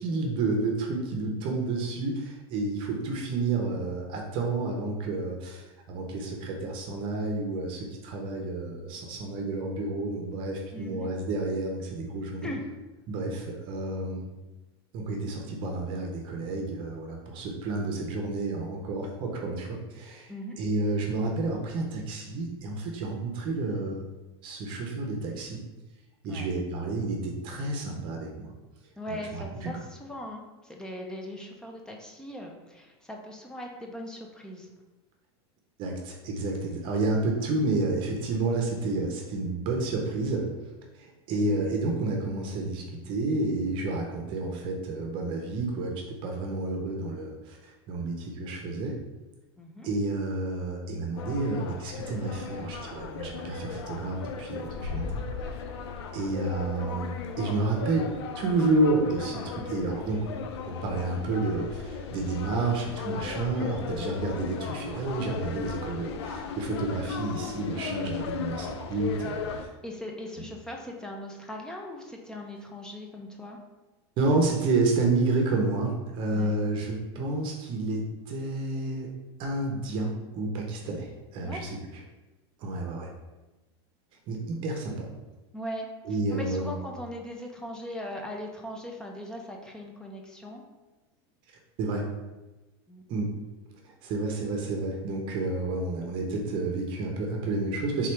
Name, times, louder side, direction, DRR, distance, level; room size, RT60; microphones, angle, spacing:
voice 1, 0.0-12.5 13.1-14.2 14.9-24.1 24.4-25.6 26.2-28.5 29.1-29.9 35.8-40.5 40.9-49.0 49.8-55.6 56.1-60.3 60.7-69.7 70.4-70.5 74.2-79.1 79.4-82.0 82.6-83.1 84.3-85.1 86.0-86.8 91.8-92.1 93.1-93.3 93.8-98.1, right 2 dB, 40° right, 1 dB, 0.7 m, -30 dB
voice 2, 10.7-11.1 12.4-12.6 20.3-20.6 26.3-26.5 29.0-34.7 49.6-49.9 69.8-73.6 76.3-76.8 81.4-81.6 85.5-90.6 92.9-93.0, left 1 dB, 5° left, 1 dB, 0.5 m, -39 dB
sound 1, 51.2-69.7, left 5 dB, 85° left, 0.5 m, -36 dB
3.6 x 3.2 x 4.5 m, 1.1 s
supercardioid pair, 150°, 14 cm